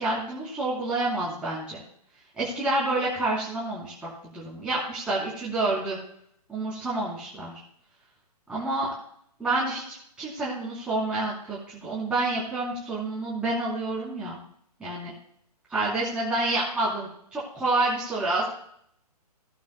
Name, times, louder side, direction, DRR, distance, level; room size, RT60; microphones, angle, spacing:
voice 1, 0.0-1.8 2.4-6.0 6.5-7.6 8.5-8.9 9.4-14.4 14.8-15.1 15.7-18.5, right 2 dB, 5° right, -8 dB, 3.4 m, -28 dB
18.5 x 9.2 x 2.2 m, 0.70 s
figure-of-eight pair, 130°, 21 cm